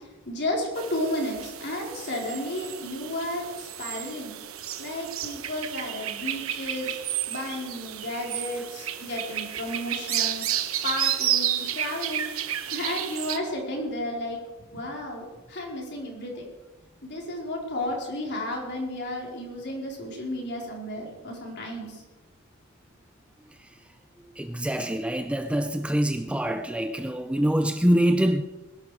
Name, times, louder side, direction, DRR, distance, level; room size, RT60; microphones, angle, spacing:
voice 1, 0.3-4.3 4.8-7.0 7.3-10.6 10.8-12.2 12.7-14.4 14.7-16.5 17.0-22.0, left 1 dB, 50° left, 4.2 m, -33 dB
sound 1, 0.7-13.4, right 11 dB, 65° right, 1.1 m, -31 dB
voice 2, 24.4-28.4, equal, 5° right, 0.5 m, -24 dB
21.0 x 12.0 x 4.9 m
head